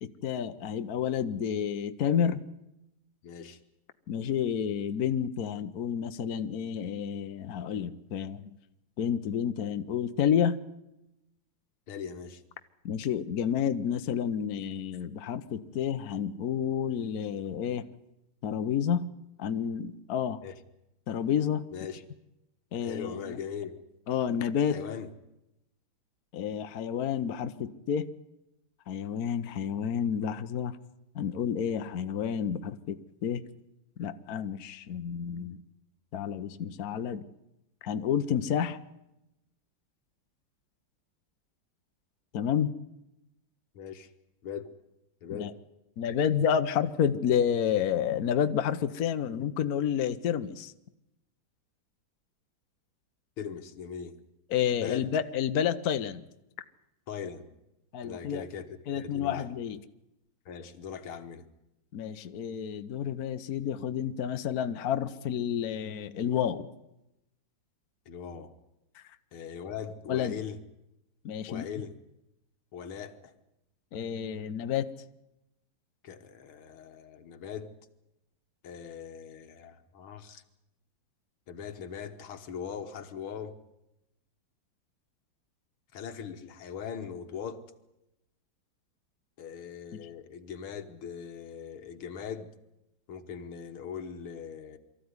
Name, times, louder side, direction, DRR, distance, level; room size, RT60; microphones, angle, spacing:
voice 1, 0.0-2.4 4.1-8.4 9.0-10.6 12.8-17.8 18.4-19.1 19.4-20.4 21.1-21.6 22.7-23.4 24.1-24.8 26.3-28.1 28.9-30.8 31.1-33.4 34.0-35.6 36.1-37.2 37.8-38.8 42.3-42.7 45.3-45.5 46.0-50.7 54.5-56.3 57.9-58.4 58.9-59.8 61.9-66.7 68.9-69.0 70.1-70.3 71.2-71.6 73.9-74.9, left 8 dB, 55° left, 9 dB, 1.2 m, -30 dB
voice 2, 3.2-3.6 11.9-12.4 20.4-20.6 21.7-22.0 22.8-23.8 24.7-25.1 43.7-44.1 44.4-44.7 45.2-45.5 53.4-54.2 54.8-55.2 57.1-57.5 58.0-59.5 60.5-61.5 68.1-68.5 69.3-70.6 71.5-71.9 72.7-73.3 76.0-77.7 78.6-80.4 81.5-83.6 85.9-87.6 89.4-92.5 93.1-94.8, left 7 dB, 85° left, 8 dB, 2.2 m, -40 dB
23.5 x 14.5 x 9.6 m, 0.90 s
omnidirectional pair, 2.3 m